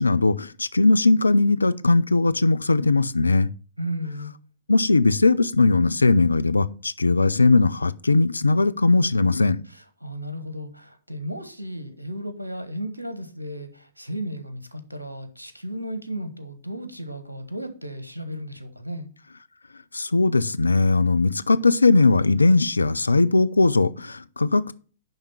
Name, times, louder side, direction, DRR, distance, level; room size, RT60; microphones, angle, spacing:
voice 1, 0.0-3.5 4.7-9.6 19.9-24.7, left 3 dB, 80° left, 0.4 m, -19 dB
voice 2, 3.8-4.3 10.0-19.1, equal, 85° right, 1.2 m, -34 dB
10.5 x 3.6 x 5.6 m
figure-of-eight pair, 110°, 0 cm